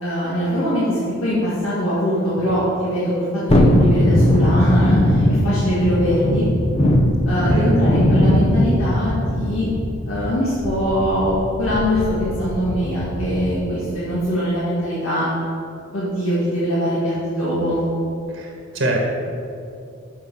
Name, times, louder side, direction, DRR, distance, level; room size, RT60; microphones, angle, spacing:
voice 1, 0.0-6.5 7.3-9.7 10.1-15.3 15.9-17.8, equal, 85° left, -10 dB, 2.1 m, -22 dB
Thunderstorm, 3.5-13.7 14.1-14.2, left 1 dB, 30° left, 0.6 m, -19 dB
voice 2, 7.5-7.8 18.3-19.0, right 1 dB, 65° right, -1 dB, 1.5 m, -24 dB
7.6 x 5.7 x 5.6 m, 2.5 s
head